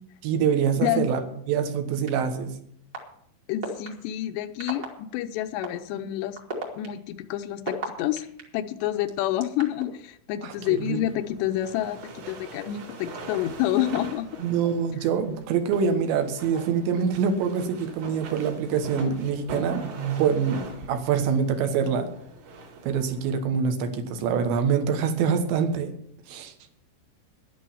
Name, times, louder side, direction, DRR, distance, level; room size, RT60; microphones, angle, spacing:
voice 1, 0.2-1.2 1.5-2.6 10.4-11.0 14.4-22.1 22.8-25.9 26.3-26.5, right 6 dB, 70° right, 8 dB, 3.3 m, -25 dB
sound 1, 2.1-2.2 2.9-3.0 3.6-3.9 4.6-4.9 5.6-5.7 6.3-8.4 9.1-9.8, right 4 dB, 30° right, 1.7 m, -33 dB
voice 2, 3.5-6.4 6.8-8.3 8.5-14.3, left 12 dB, 80° left, 10 dB, 2.6 m, -28 dB
sound 2, 10.5-23.3, right 2 dB, 55° right, 4.2 m, -42 dB
11.0 x 11.0 x 7.1 m, 0.68 s
omnidirectional pair, 5.7 m